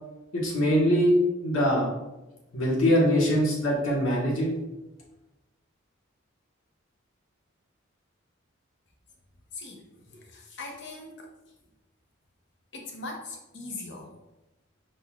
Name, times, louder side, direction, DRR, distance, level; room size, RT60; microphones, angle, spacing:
voice 1, 0.3-1.1 1.4-1.9 2.5-4.5, equal, 85° left, -3 dB, 1.6 m, -23 dB
voice 2, 10.1-11.3 12.7-14.1, left 3 dB, 60° left, 1 dB, 0.9 m, -40 dB
5.5 x 4.0 x 2.4 m, 1.0 s
head